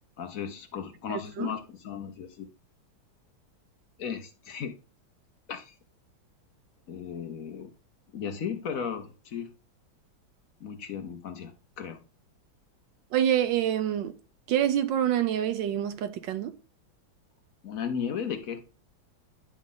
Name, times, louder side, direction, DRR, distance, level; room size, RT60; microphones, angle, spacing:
voice 1, 0.2-2.5 4.0-4.7 5.5-5.7 6.9-7.7 8.1-9.5 10.6-12.0 17.6-18.6, left 7 dB, 55° left, 1.0 m, -35 dB
voice 2, 1.1-1.5 13.1-14.1 14.5-16.5, right 10 dB, 70° right, 1.3 m, -26 dB
10.5 x 3.6 x 3.8 m
omnidirectional pair, 2.2 m